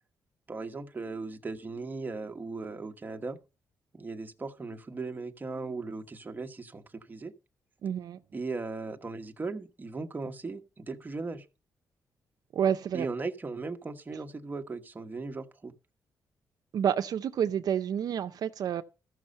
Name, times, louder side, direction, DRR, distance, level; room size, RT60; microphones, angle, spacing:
voice 1, 0.5-3.4 3.9-7.3 8.3-11.4 12.9-15.7, right 3 dB, 25° right, 1.3 m, -37 dB
voice 2, 7.8-8.2 12.5-13.1 16.7-18.8, right 8 dB, 70° right, 0.6 m, -29 dB
14.0 x 6.3 x 5.5 m
cardioid pair, 90°, 7 cm